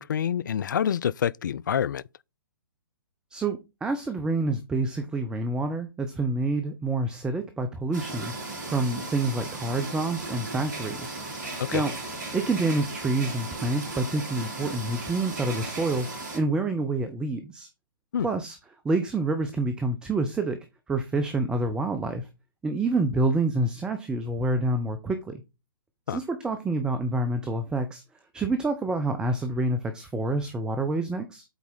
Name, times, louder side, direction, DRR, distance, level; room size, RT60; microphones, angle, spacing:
voice 1, 0.0-2.0 11.6-11.8 18.1-18.3 26.1-26.2, left 8 dB, 55° left, 0.3 m, -27 dB
voice 2, 3.3-8.3 8.7-11.1 11.7-11.9 12.3-16.1 16.3-17.7 18.2-18.6 18.8-20.6 20.9-22.3 22.6-25.4 26.1-28.0 28.3-31.4, right 2 dB, 5° right, 0.5 m, -27 dB
sound 1, 7.9-16.4, right 2 dB, 50° right, 3.0 m, -36 dB
8.1 x 4.2 x 3.8 m
figure-of-eight pair, 130°, 12 cm